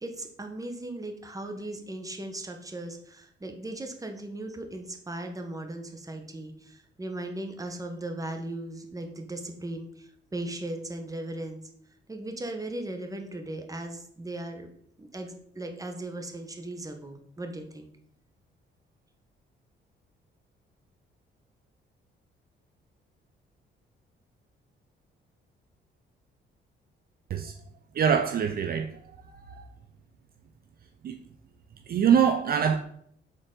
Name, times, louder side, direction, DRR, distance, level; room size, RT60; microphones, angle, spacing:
voice 1, 0.0-11.6 12.1-14.7 15.0-17.9, right 1 dB, 15° right, 1.0 m, -37 dB
voice 2, 27.9-29.0 29.3-29.6 31.0-31.2 31.9-32.8, right 7 dB, 50° right, 0.5 m, -24 dB
6.5 x 3.9 x 3.7 m
cardioid pair, 90°, 20 cm